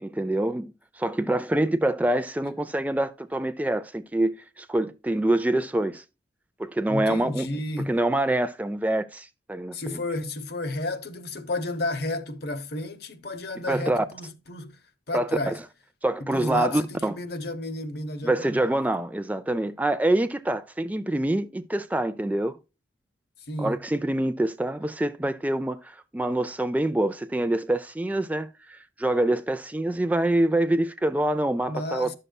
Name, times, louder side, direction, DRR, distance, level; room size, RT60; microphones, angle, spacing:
voice 1, 0.0-6.0 6.6-7.5 7.9-10.0 13.7-14.0 15.1-15.6 16.0-17.2 18.2-22.6 23.6-32.1, right 1 dB, 10° right, 0.3 m, -26 dB
voice 2, 6.9-7.9 9.7-14.8 15.1-15.6 16.2-18.7 23.5-23.8 31.7-32.1, left 2 dB, 60° left, 0.9 m, -32 dB
11.0 x 6.6 x 2.2 m
head